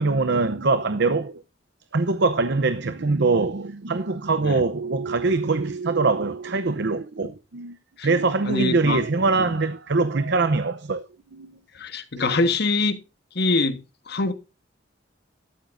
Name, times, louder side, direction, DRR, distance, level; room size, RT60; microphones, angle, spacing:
voice 1, 0.0-1.4 1.9-7.8 8.0-11.1 11.3-11.5 12.1-12.4 14.2-14.3, right 3 dB, 65° right, 0.7 m, -23 dB
voice 2, 8.5-9.0 9.4-9.5 11.7-13.0 13.3-14.3, left 3 dB, 60° left, 1.4 m, -24 dB
13.0 x 12.5 x 2.6 m
head